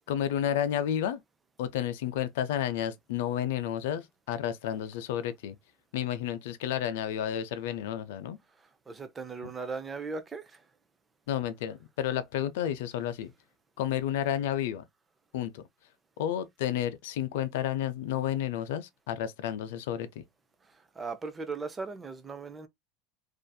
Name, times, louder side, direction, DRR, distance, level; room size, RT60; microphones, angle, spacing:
voice 1, 0.1-1.2 1.6-5.6 5.9-8.4 11.3-13.3 13.8-14.8 15.3-15.6 16.2-20.2, left 10 dB, 80° left, 0.5 m, -31 dB
voice 2, 8.9-10.6 21.0-22.7, right 4 dB, 15° right, 0.4 m, -38 dB
2.6 x 2.5 x 2.2 m
supercardioid pair, 165°, 0 cm